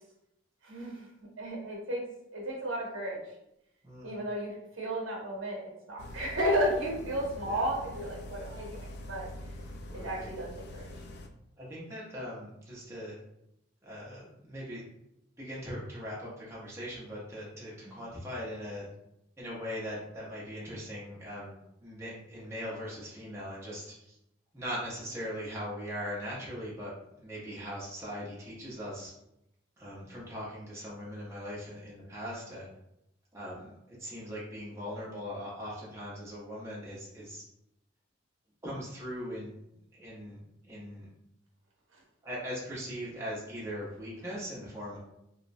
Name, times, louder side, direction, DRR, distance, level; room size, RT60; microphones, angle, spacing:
voice 1, 0.6-1.1 1.4-2.0 2.3-3.3 4.0-9.3 9.9-10.8 17.8-18.0 41.9-42.0, equal, 80° right, -2 dB, 0.9 m, -33 dB
voice 2, 3.8-4.2 7.4-7.6 9.9-10.3 11.6-13.2 13.8-14.8 15.4-18.9 19.4-24.2 24.5-29.1 29.8-32.7 33.3-37.4 38.6-39.5 39.9-40.4 40.6-41.1 42.2-45.0, equal, 15° right, -7 dB, 0.7 m, -40 dB
sound 1, 6.0-11.3, left 1 dB, 55° left, 0.3 m, -44 dB
2.9 x 2.1 x 2.5 m, 0.82 s
head